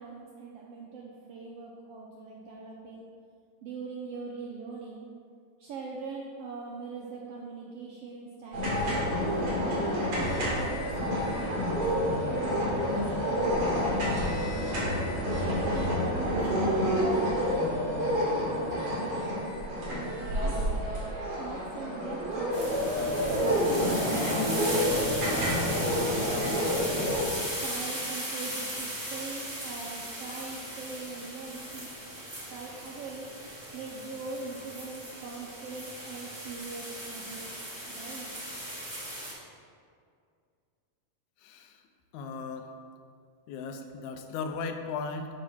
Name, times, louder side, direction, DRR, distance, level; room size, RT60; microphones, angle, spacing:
voice 1, 0.0-3.0 3.6-5.1 5.6-9.8 10.2-14.6 15.3-20.9 21.4-25.1 25.7-27.0 27.5-31.9 32.5-33.3 33.7-37.5 37.9-38.3, right 4 dB, 80° right, -3 dB, 1.4 m, -42 dB
sound 1, 8.5-27.2, equal, 60° right, 3.3 m, -28 dB
sound 2, 22.5-39.3, right 1 dB, 15° right, 1.0 m, -38 dB
voice 2, 41.4-41.8 42.1-42.7 43.5-45.3, left 4 dB, 80° left, 6 dB, 1.9 m, -36 dB
9.0 x 3.6 x 5.6 m, 2.2 s
omnidirectional pair, 3.4 m